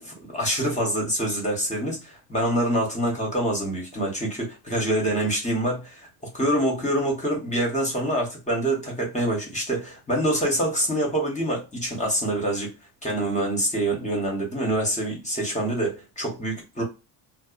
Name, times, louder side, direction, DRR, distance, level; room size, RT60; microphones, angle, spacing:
voice 1, 0.0-6.1 6.3-12.7 13.0-16.8, right 1 dB, 15° left, 1.1 m, -26 dB
2.6 x 2.2 x 2.4 m
cardioid pair, 120°, 48 cm